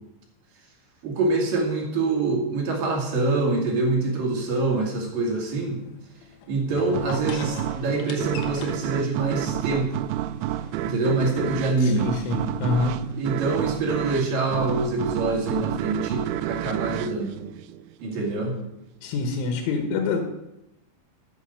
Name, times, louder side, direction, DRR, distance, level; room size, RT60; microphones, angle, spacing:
voice 1, 1.0-5.8 6.5-10.0 10.8-12.1 12.8-17.4 18.0-18.6, right 3 dB, 55° right, 0 dB, 3.7 m, -25 dB
sound 1, 4.6-13.1, left 5 dB, 70° left, 2.8 m, -43 dB
sound 2, 6.9-18.2, right 13 dB, 85° right, 2.9 m, -30 dB
voice 2, 11.8-12.9 19.0-20.2, left 4 dB, 90° left, 4 dB, 3.9 m, -26 dB
13.5 x 8.3 x 6.6 m, 0.86 s
omnidirectional pair, 5.4 m